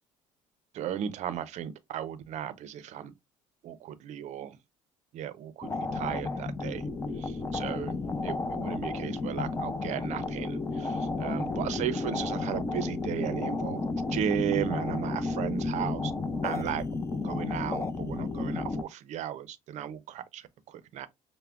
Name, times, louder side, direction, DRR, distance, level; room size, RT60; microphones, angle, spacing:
voice 1, 0.7-3.1 3.6-4.6 5.1-6.9 7.2-16.1 16.4-16.8 17.1-21.1, right 10 dB, 60° right, 0.5 m, -35 dB
sound 1, 5.6-18.8, left 3 dB, 20° left, 0.5 m, -32 dB
5.6 x 2.1 x 2.4 m
cardioid pair, 105°, 13 cm